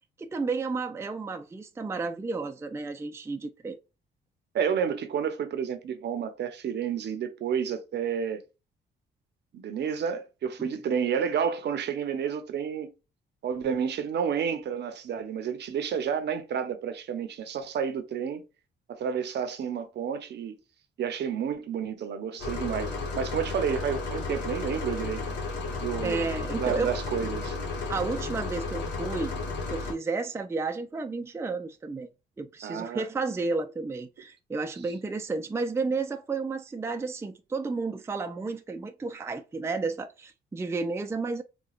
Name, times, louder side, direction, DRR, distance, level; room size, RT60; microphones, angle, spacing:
voice 1, 0.2-3.8 10.6-10.7 25.7-26.9 27.2-27.3 27.9-29.4 29.7-32.1 32.4-41.4, right 4 dB, 15° right, 0.4 m, -32 dB
voice 2, 4.5-8.4 9.5-12.9 13.4-18.4 18.9-20.6 21.0-25.3 25.8-26.3 26.6-27.6 32.6-33.1, right 7 dB, 60° right, 0.7 m, -30 dB
sound 1, 22.4-29.9, left 3 dB, 65° left, 1.3 m, -33 dB
4.1 x 2.2 x 2.4 m
cardioid pair, 90°, 20 cm